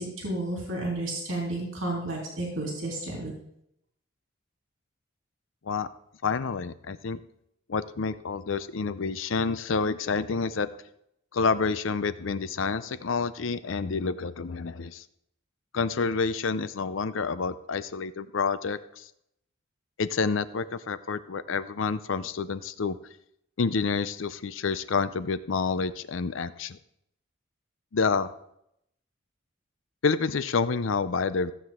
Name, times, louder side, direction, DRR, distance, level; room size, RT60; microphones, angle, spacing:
voice 1, 0.0-3.3, right 2 dB, 75° right, -3 dB, 3.3 m, -32 dB
voice 2, 6.2-7.2 7.7-10.7 11.3-15.0 15.7-19.0 20.0-23.0 23.6-26.8 27.9-28.3 30.0-31.5, left 5 dB, 75° left, 14 dB, 0.6 m, -28 dB
15.5 x 8.0 x 3.7 m, 0.76 s
head